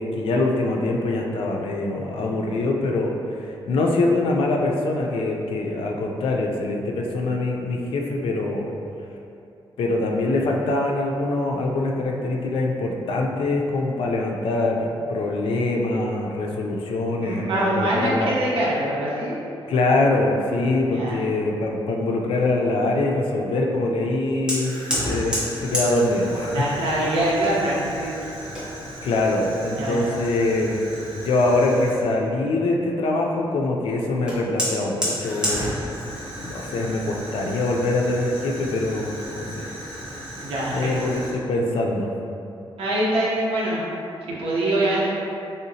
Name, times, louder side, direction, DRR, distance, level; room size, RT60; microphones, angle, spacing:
voice 1, 0.0-3.2 3.7-8.7 9.8-18.3 19.7-24.7 25.0-26.7 28.5-28.6 29.0-30.9 31.1-35.7 36.4-39.7 40.7-42.1, left 2 dB, 80° left, 0 dB, 0.4 m, -23 dB
voice 2, 17.2-19.4 20.9-21.2 26.5-28.2 29.8-30.0 40.4-41.1 42.8-43.8 44.3-45.1, right 1 dB, 85° right, -6 dB, 0.8 m, -24 dB
Fire, 24.5-32.1 34.3-41.3, equal, 10° right, 0.7 m, -32 dB
3.4 x 2.8 x 2.7 m, 2.7 s
wide cardioid pair, 150°, 9 cm